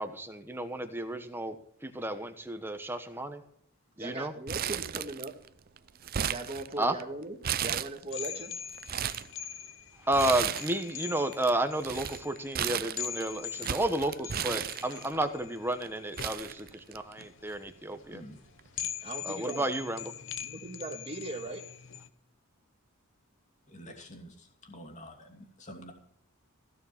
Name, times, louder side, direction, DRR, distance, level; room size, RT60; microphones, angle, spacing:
voice 1, 0.0-1.5 1.8-3.4 4.0-4.3 6.8-6.9 10.1-18.2 19.2-20.1, right 1 dB, 10° right, 8 dB, 1.1 m, -32 dB
voice 2, 4.0-5.3 6.3-8.5 18.8-19.7 20.4-21.6, right 2 dB, 25° right, 3 dB, 2.0 m, -39 dB
Crumpling crinkling, 4.5-5.5 5.8-7.0 7.4-8.3 8.7-9.3 10.1-10.9 11.2-15.2 15.8-15.9 16.2-17.2 17.5-17.6 18.6-18.8, right 9 dB, 45° right, 0.5 m, -34 dB
sound 1, 8.1-22.1, left 9 dB, 60° left, 0.9 m, -43 dB
voice 3, 18.1-18.4 23.7-25.9, equal, 35° left, 3 dB, 2.6 m, -48 dB
16.0 x 6.8 x 7.2 m, 0.67 s
head